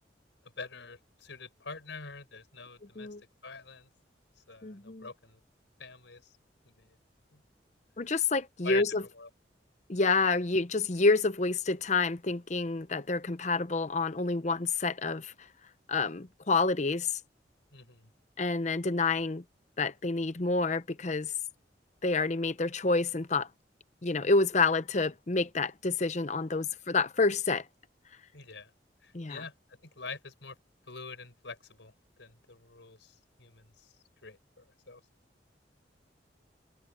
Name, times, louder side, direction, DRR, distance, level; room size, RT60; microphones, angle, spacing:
voice 1, 0.6-3.1 3.4-3.9 4.5-5.4 5.8-6.2 6.6-6.9 7.3-7.4 8.6-8.8 9.2-9.3 17.7-18.1 28.3-28.7 29.0-29.5 30.0-30.5 30.9-31.9 32.2-33.1 33.4-33.6 34.2-35.0, left 4 dB, 90° left, 4.8 m, -44 dB
voice 2, 4.6-5.1 8.0-9.0 9.9-15.3 15.9-17.2 18.4-19.4 19.8-21.3 22.0-23.5 24.0-27.6 29.1-29.4, left 3 dB, 40° left, 0.8 m, -28 dB
head